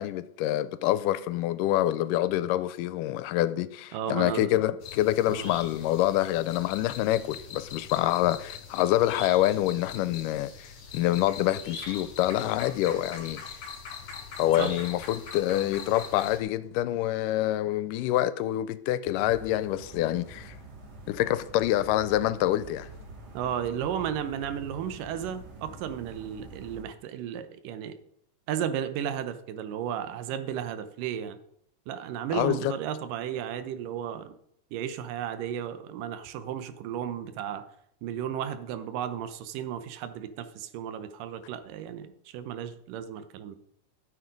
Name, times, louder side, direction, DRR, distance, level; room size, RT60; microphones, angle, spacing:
voice 1, 0.0-13.6 14.4-20.6 21.1-22.9 32.3-32.8, left 14 dB, 85° left, 2.2 m, -26 dB
voice 2, 3.9-4.5 5.3-5.5 14.6-14.7 23.3-28.0 28.5-31.4 31.9-34.3 34.7-37.6 38.0-43.6, right 9 dB, 90° right, 2.5 m, -34 dB
sound 1, 4.8-16.4, left 6 dB, 55° left, 2.8 m, -42 dB
sound 2, 19.1-26.8, right 2 dB, 65° right, 3.4 m, -46 dB
13.0 x 7.3 x 5.2 m
omnidirectional pair, 3.7 m